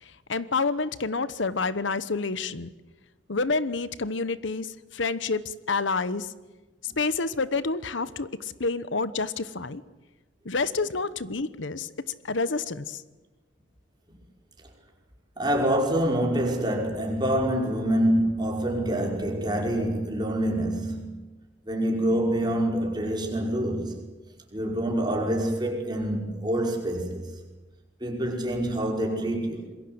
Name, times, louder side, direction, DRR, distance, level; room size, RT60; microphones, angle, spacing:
voice 1, 0.0-2.7 3.3-6.3 6.8-9.8 10.4-11.9 12.2-13.0, left 4 dB, 75° left, 1.0 m, -28 dB
voice 2, 15.4-21.2 21.7-24.0 24.5-27.3 28.0-29.7, right 1 dB, 20° right, 5.4 m, -26 dB
27.0 x 22.0 x 8.0 m
head